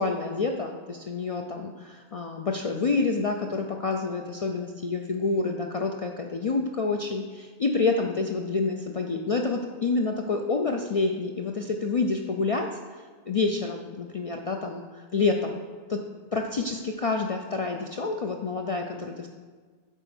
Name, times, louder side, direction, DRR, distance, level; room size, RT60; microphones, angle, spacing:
voice 1, 0.0-15.6 15.9-16.0 16.3-19.3, left 3 dB, 45° left, 3 dB, 0.5 m, -28 dB
8.1 x 4.4 x 6.0 m, 1.5 s
omnidirectional pair, 1.1 m